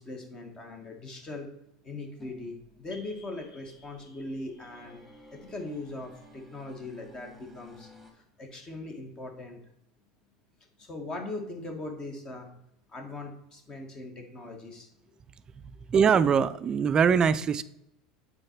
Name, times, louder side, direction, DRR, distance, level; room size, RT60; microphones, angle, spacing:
voice 1, 0.0-1.5 1.8-5.0 5.3-9.6 10.8-12.5 12.9-14.9, left 2 dB, 30° left, 1.5 m, -40 dB
sound 1, 2.2-8.1, left 2 dB, 5° left, 1.8 m, -56 dB
sound 2, 2.9-7.3, left 2 dB, 85° left, 1.1 m, -59 dB
voice 2, 15.6-17.6, right 6 dB, 30° right, 0.4 m, -23 dB
7.7 x 4.2 x 4.5 m
hypercardioid pair, 80°, 2 cm